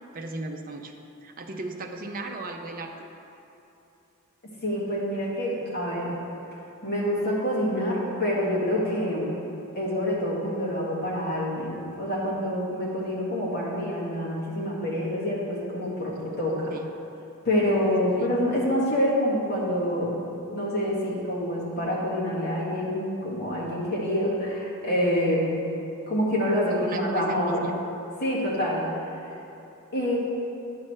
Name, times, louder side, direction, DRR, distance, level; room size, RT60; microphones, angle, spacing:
voice 1, 0.1-0.9 1.2-2.9 16.7-16.8 18.1-18.3 26.7-27.7, right 2 dB, 40° right, 3 dB, 0.6 m, -36 dB
voice 2, 4.6-6.2 6.8-9.3 9.8-16.7 17.4-20.2 20.5-25.6 26.1-27.7 28.2-28.9 29.9-30.2, equal, 50° left, -6 dB, 1.8 m, -26 dB
10.0 x 5.9 x 3.3 m, 2.8 s
head